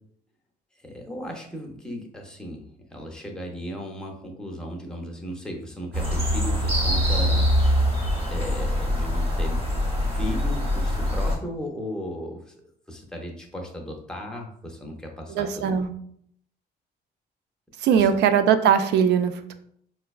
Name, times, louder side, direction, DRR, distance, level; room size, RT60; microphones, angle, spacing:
voice 1, 0.8-7.7 8.3-9.7 10.0-12.5 12.9-15.8 18.0-18.1, equal, 5° left, 0 dB, 0.5 m, -36 dB
sound 1, 5.9-11.4, equal, 30° right, 0.9 m, -23 dB
voice 2, 15.3-15.9 17.8-19.5, right 8 dB, 80° right, 9 dB, 0.4 m, -20 dB
4.7 x 2.1 x 2.3 m, 0.67 s
cardioid pair, 145°, 17 cm